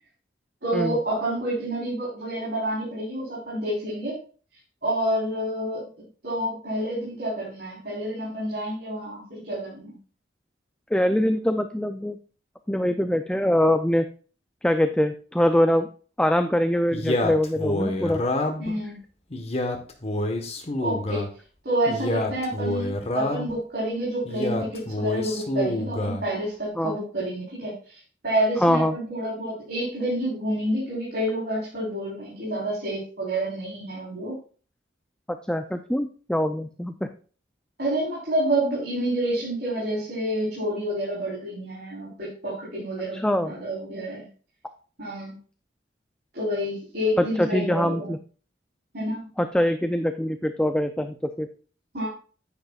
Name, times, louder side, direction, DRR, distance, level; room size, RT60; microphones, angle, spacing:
voice 1, 0.6-4.2 4.8-5.9 6.2-9.9 18.6-19.0 20.8-21.3 21.6-34.4 37.8-44.3 45.0-45.4 46.3-48.1 48.9-49.2 51.9-52.1, right 1 dB, 60° right, -7 dB, 4.0 m, -28 dB
voice 2, 10.9-12.2 12.7-14.1 14.6-15.9 16.2-18.2 26.8-27.0 28.6-29.0 35.5-37.1 43.1-43.5 47.2-48.2 49.4-51.5, left 1 dB, 5° left, 8 dB, 0.4 m, -23 dB
Male speech man speaking, 16.9-18.7 19.3-21.3 21.9-23.6 24.3-26.2, left 1 dB, 35° left, 1.3 m, -27 dB
9.7 x 9.6 x 2.4 m, 0.39 s
head